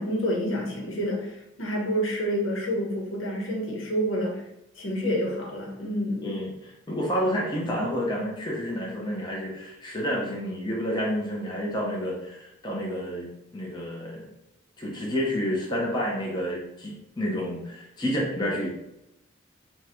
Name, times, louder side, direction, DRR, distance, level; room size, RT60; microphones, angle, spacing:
voice 1, 0.0-4.4 4.7-6.3, equal, 75° left, -1 dB, 1.1 m, -28 dB
voice 2, 6.9-13.3 13.5-14.3 14.8-18.7, equal, 20° left, -3 dB, 0.8 m, -29 dB
5.4 x 2.3 x 3.0 m, 0.86 s
head